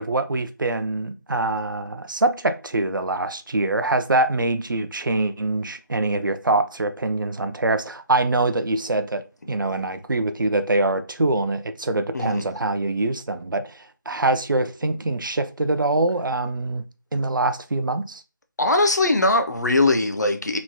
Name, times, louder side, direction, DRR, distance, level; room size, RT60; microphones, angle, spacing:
voice 1, 0.0-16.8 17.1-18.2, right 2 dB, 80° right, 0.4 m, -24 dB
voice 2, 18.6-20.6, left 2 dB, 60° left, 0.5 m, -20 dB
3.0 x 2.1 x 2.6 m
figure-of-eight pair, 175°, 11 cm